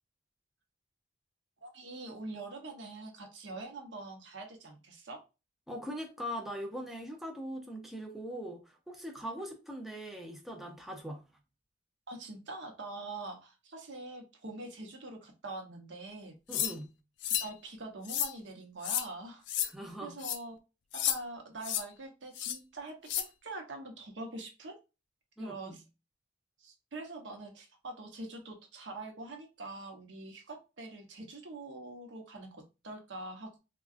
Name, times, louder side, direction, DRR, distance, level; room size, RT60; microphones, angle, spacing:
voice 1, 1.6-5.2 12.1-16.3 17.4-19.4 20.0-20.6 20.9-24.7 25.4-25.8 26.6-33.6, right 2 dB, 80° right, 0.8 m, -44 dB
voice 2, 5.7-11.3 16.5-16.9 19.6-20.2 25.4-25.8, equal, ahead, 0.5 m, -41 dB
sound 1, 16.5-16.7 17.2-17.5 18.1-18.3 18.8-19.1 19.5-19.7 20.2-20.4 20.9-21.2 21.6-21.8 22.4-22.6 23.1-23.2, left 10 dB, 75° left, 0.4 m, -31 dB
3.6 x 2.3 x 2.4 m
head